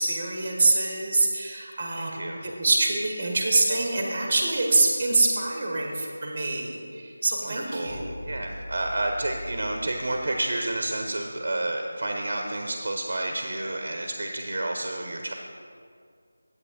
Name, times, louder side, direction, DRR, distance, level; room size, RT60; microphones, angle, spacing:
voice 1, 0.0-8.1, right 2 dB, 15° right, 1 dB, 0.9 m, -25 dB
voice 2, 1.9-2.5 7.4-15.3, right 1 dB, 40° right, 3 dB, 0.6 m, -30 dB
sound 1, 7.8-11.3, left 1 dB, 25° left, 0.9 m, -42 dB
9.6 x 8.0 x 3.6 m, 2.2 s
figure-of-eight pair, 180°, 0 cm